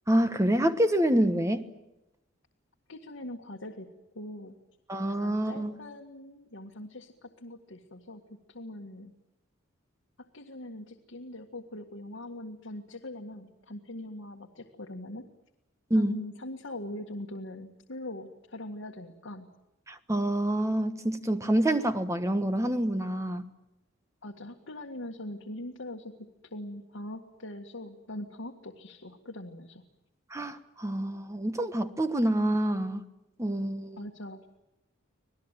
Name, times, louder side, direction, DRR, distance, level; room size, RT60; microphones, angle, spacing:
voice 1, 0.1-1.7 4.9-5.8 15.9-16.2 19.9-23.4 30.3-33.0 33.4-34.0, right 1 dB, 15° right, 10 dB, 1.3 m, -27 dB
voice 2, 2.9-3.9 4.1-4.5 5.1-8.2 8.5-9.1 10.3-15.2 15.9-19.5 24.2-26.1 26.5-29.8 34.0-34.4, left 1 dB, 70° left, 1 dB, 1.9 m, -42 dB
26.5 x 18.5 x 9.1 m, 0.93 s
head